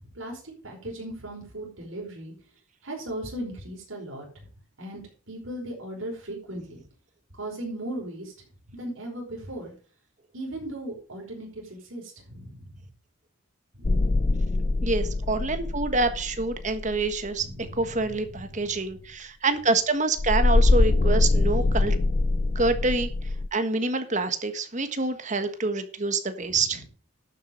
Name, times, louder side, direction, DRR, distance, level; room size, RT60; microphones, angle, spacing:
voice 1, 0.1-2.3 2.8-4.3 4.8-5.0 5.3-6.8 7.4-8.3 8.7-9.7 10.3-12.6 13.8-14.5 17.4-18.0 18.3-18.7, right 1 dB, 80° right, -1 dB, 5.1 m, -37 dB
sound 1, 13.8-17.4 20.2-23.5, left 2 dB, 35° left, 0.5 m, -23 dB
voice 2, 14.8-17.5 17.8-21.9 22.5-23.1 23.5-26.8, right 3 dB, 35° right, 8 dB, 1.5 m, -26 dB
11.5 x 7.6 x 5.3 m, 0.39 s
head